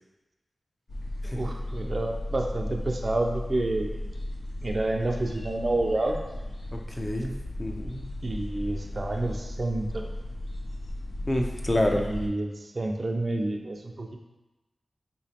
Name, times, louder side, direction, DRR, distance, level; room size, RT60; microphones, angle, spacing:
sound 1, 0.9-12.3, left 1 dB, 80° left, 0.5 m, -35 dB
voice 1, 1.2-4.1 4.6-6.2 8.2-10.1 12.0-14.2, right 2 dB, 55° right, 2 dB, 0.4 m, -29 dB
voice 2, 6.7-7.3 7.6-8.0 11.3-12.0, left 1 dB, 30° left, 2 dB, 0.5 m, -27 dB
3.3 x 3.1 x 2.8 m, 1.1 s
cardioid pair, 45°, 0 cm